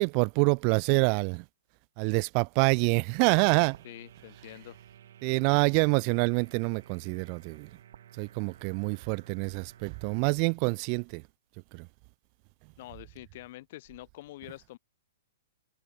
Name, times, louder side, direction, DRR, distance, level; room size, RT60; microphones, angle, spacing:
voice 1, 0.0-1.4 2.0-3.8 5.2-7.7 8.2-11.2 11.7-11.9, right 40 dB or more, 40° right, 0.5 m, -26 dB
sound 1, 3.2-10.2, right 10 dB, 65° right, 6.8 m, -54 dB
voice 2, 3.8-4.8 12.8-14.8, left 17 dB, 50° left, 5.6 m, -46 dB
hypercardioid pair, 125°, 0 cm